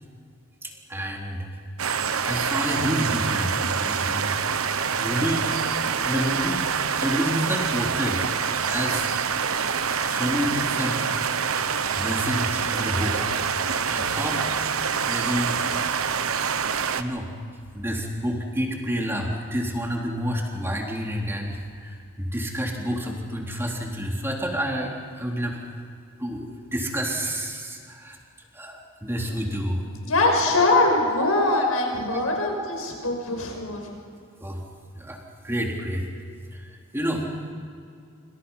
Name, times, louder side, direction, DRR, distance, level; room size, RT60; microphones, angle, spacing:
voice 1, 0.6-1.5 2.2-4.4 4.9-5.5 6.1-6.7 7.0-8.2 8.7-9.1 10.0-11.0 11.5-13.3 13.8-14.5 15.1-15.6 17.0-17.3 17.7-25.6 26.2-28.2 28.5-29.8 31.5-31.7 32.1-32.2 34.4-34.6 35.0-35.2 35.4-36.0 36.9-37.2, equal, 10° right, 0 dB, 3.6 m, -29 dB
sound 1, 1.8-17.0, right 6 dB, 80° right, 1.1 m, -26 dB
voice 2, 30.0-34.0, left 2 dB, 85° left, 2 dB, 6.1 m, -22 dB
27.5 x 26.0 x 5.7 m, 2.4 s
head